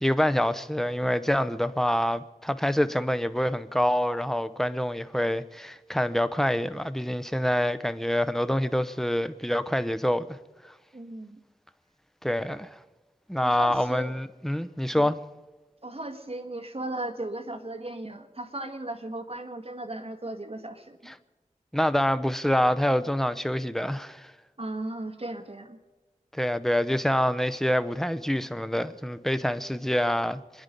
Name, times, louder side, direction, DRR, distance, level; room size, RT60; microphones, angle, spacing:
voice 1, 0.0-10.3 12.2-12.7 13.3-15.2 21.1-21.2 21.7-24.3 26.3-30.6, equal, 5° left, 0.7 m, -26 dB
voice 2, 10.9-11.4 13.4-14.1 15.8-21.1 24.6-25.8, right 2 dB, 40° right, 1.7 m, -36 dB
26.0 x 10.5 x 5.3 m
wide cardioid pair, 55°, 14 cm